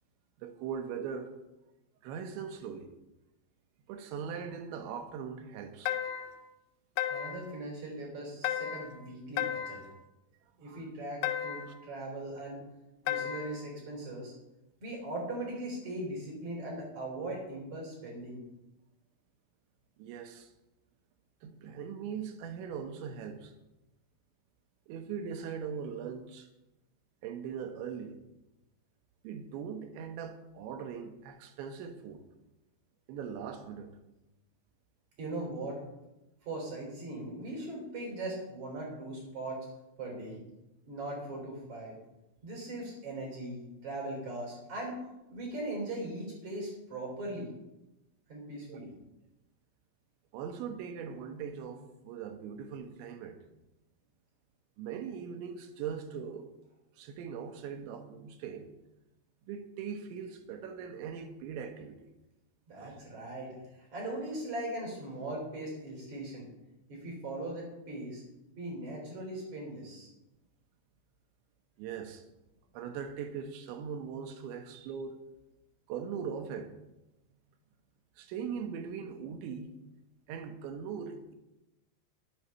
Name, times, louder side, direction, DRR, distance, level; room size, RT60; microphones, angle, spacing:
voice 1, 0.4-1.3 2.0-2.9 3.9-6.0 10.6-10.8 11.7-11.8 20.0-20.5 21.4-23.5 24.9-26.5 27.2-28.2 29.2-32.2 33.1-33.9 48.7-48.9 50.3-53.4 54.8-56.5 57.0-58.7 59.5-62.0 62.7-63.0 71.8-72.2 72.7-75.2 75.9-76.7 78.2-79.8 80.3-81.3, right 7 dB, 90° right, 3.3 m, -40 dB
sound 1, 5.9-6.4 7.0-7.5 8.4-9.0 9.4-9.9 11.2-11.8 13.1-13.6, left 10 dB, 85° left, 2.8 m, -34 dB
voice 2, 7.1-9.8 10.6-12.6 13.1-14.3 14.8-18.4 35.2-35.8 36.4-39.7 40.0-40.4 40.9-42.0 42.4-45.0 45.3-47.5 48.3-48.9 62.7-66.5 66.9-68.2 68.6-70.1, right 1 dB, 40° right, 4.6 m, -39 dB
10.5 x 8.0 x 5.9 m
omnidirectional pair, 5.1 m